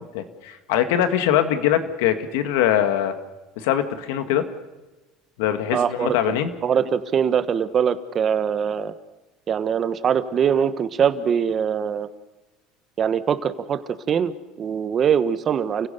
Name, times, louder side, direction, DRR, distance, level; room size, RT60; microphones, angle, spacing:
voice 1, 0.0-3.1 3.6-4.4 5.4-6.5, left 10 dB, 85° left, 8 dB, 1.9 m, -22 dB
voice 2, 5.7-6.1 6.6-8.9 9.5-12.1 13.0-13.8 14.1-15.9, right 7 dB, 35° right, 12 dB, 1.3 m, -22 dB
28.5 x 16.0 x 6.8 m, 1.1 s
supercardioid pair, 115°, 0 cm